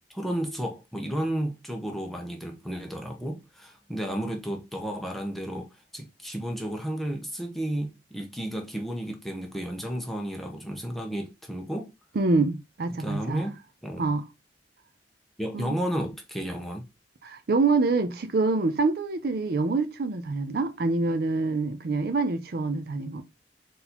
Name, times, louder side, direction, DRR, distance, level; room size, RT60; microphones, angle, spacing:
voice 1, 0.1-11.9 13.0-13.5 13.8-14.1 15.4-16.8, right 1 dB, ahead, 0.9 m, -32 dB
voice 2, 12.2-13.5 14.0-14.2 15.5-15.7 17.2-23.2, right 3 dB, 60° right, 0.5 m, -26 dB
4.1 x 2.7 x 4.3 m
head